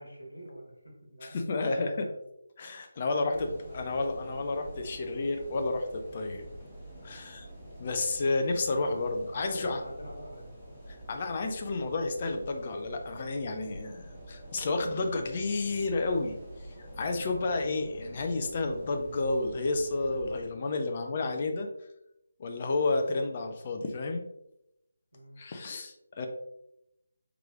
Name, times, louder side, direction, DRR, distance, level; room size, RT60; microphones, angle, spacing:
voice 1, 0.0-2.2 3.1-3.4 3.7-3.9 8.7-10.5 17.1-17.5 25.1-25.5, equal, 80° left, 0 dB, 1.3 m, -45 dB
voice 2, 1.2-1.9 2.6-3.5 3.7-6.4 7.0-7.5 7.8-9.8 11.1-16.4 17.0-21.7 22.4-24.3 25.4-26.3, left 3 dB, 35° left, 5 dB, 0.4 m, -31 dB
sound 1, 3.3-20.5, right 1 dB, 10° left, 1.3 m, -47 dB
4.7 x 3.1 x 2.3 m, 0.83 s
figure-of-eight pair, 155°, 0 cm